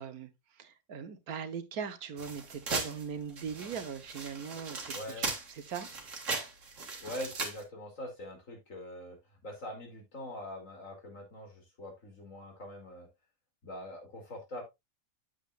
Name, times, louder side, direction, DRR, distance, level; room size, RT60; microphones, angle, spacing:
voice 1, 0.0-5.9, right 7 dB, 85° right, 1.5 m, -40 dB
sound 1, 2.2-7.6, right 3 dB, 60° right, 2.1 m, -38 dB
voice 2, 4.9-5.3 7.0-13.1 13.6-14.6, left 1 dB, 60° left, 3.2 m, -43 dB
8.2 x 8.1 x 2.4 m
omnidirectional pair, 1.5 m